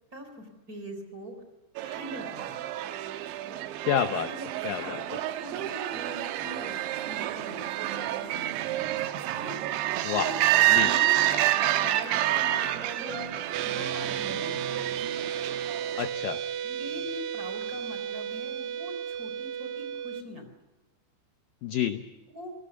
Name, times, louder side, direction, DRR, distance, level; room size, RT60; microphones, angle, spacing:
voice 1, 0.1-1.3 1.8-2.6 4.3-6.8 7.1-8.9 9.3-9.6 10.1-10.3 10.7-11.2 11.8-13.3 13.6-14.8 16.6-20.5 22.3-22.5, left 1 dB, 20° right, 5 dB, 3.6 m, -42 dB
sound 1, 1.8-16.1, right 14 dB, 90° right, 3.3 m, -28 dB
voice 2, 3.8-4.3 4.6-5.0 10.0-10.3 10.7-10.9 16.0-16.4 21.6-22.0, left 9 dB, 80° left, 9 dB, 2.0 m, -28 dB
sound 2, 13.5-20.2, right 8 dB, 75° right, 2.3 m, -33 dB
28.0 x 19.0 x 7.0 m, 1.1 s
omnidirectional pair, 5.2 m